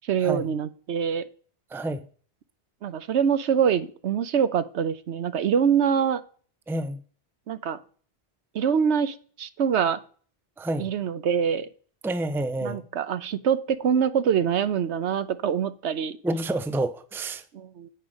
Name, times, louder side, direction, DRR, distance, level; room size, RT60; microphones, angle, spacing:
voice 1, 0.0-1.2 2.8-6.2 7.5-7.8 8.5-10.0 10.8-11.7 12.6-16.2 17.5-17.9, right 7 dB, 85° right, 1.1 m, -24 dB
voice 2, 1.7-2.1 6.7-7.0 10.6-10.9 12.0-12.8 16.2-17.4, right 2 dB, 5° right, 0.5 m, -28 dB
8.9 x 5.6 x 6.3 m
omnidirectional pair, 1.1 m